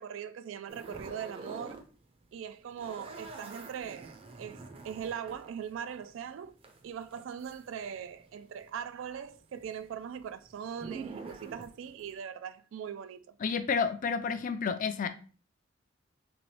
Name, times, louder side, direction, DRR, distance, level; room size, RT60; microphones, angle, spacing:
voice 1, 0.0-1.8 2.3-6.5 6.8-13.4, right 8 dB, 90° right, 0.3 m, -41 dB
sound 1, 0.7-1.9 2.1-8.3 8.6-12.2, right 3 dB, 30° right, 0.5 m, -47 dB
voice 2, 13.4-15.1, left 5 dB, 45° left, 0.4 m, -30 dB
3.0 x 2.9 x 3.1 m
head